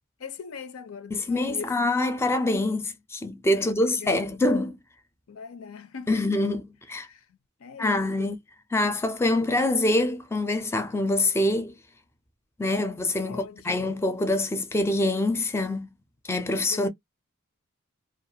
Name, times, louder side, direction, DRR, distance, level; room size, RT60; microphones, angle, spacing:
voice 1, 0.2-1.8 3.6-4.3 5.3-6.4 7.0-7.3 7.6-8.4 13.3-14.0 16.7-16.9, left 6 dB, 80° left, 0.5 m, -41 dB
voice 2, 1.1-4.8 6.1-7.1 7.8-8.4 8.7-11.7 12.6-15.9 16.3-16.9, left 2 dB, 10° left, 0.4 m, -25 dB
2.3 x 2.1 x 2.7 m
head